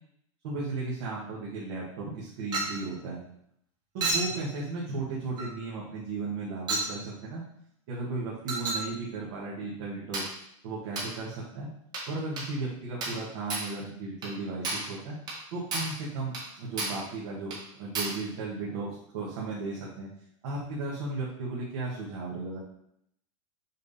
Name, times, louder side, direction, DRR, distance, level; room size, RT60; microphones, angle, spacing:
voice 1, 0.4-3.2 3.9-7.4 7.9-10.3 10.6-11.7 12.1-15.2 15.5-20.1 20.4-22.6, right 3 dB, 50° right, -6 dB, 1.8 m, -35 dB
Chink clink, 2.5-2.8 4.0-4.4 5.4-5.5 6.7-6.9 8.5-8.9 10.1-10.4 11.0-11.2 11.9-12.1 12.4-12.5 13.0-13.2 13.5-13.7 14.2-14.3 14.6-14.9 15.3-15.4 15.7-16.0 16.3-16.5 16.8-17.1 17.5-17.6 17.9-18.2, right 2 dB, 25° right, 1.6 m, -32 dB
6.4 x 3.5 x 4.2 m, 0.72 s
supercardioid pair, 165°, 17 cm